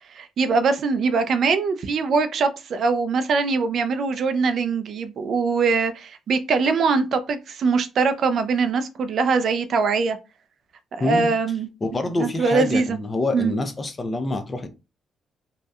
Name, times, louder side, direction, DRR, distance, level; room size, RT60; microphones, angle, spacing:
voice 1, 0.1-10.2 11.0-11.7 12.2-13.0 13.3-13.5, right 4 dB, 60° right, 0.3 m, -22 dB
voice 2, 11.8-14.7, left 2 dB, 30° left, 0.5 m, -26 dB
2.6 x 2.1 x 2.3 m
cardioid pair, 90°, 0 cm